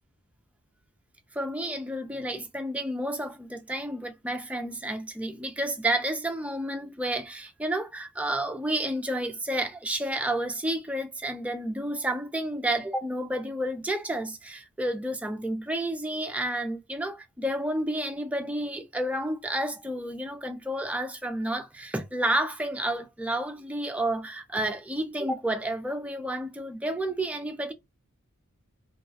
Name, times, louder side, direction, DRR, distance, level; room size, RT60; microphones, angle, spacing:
voice 1, 1.3-27.7, right 1 dB, 5° right, 0.3 m, -30 dB
2.2 x 2.1 x 2.5 m
head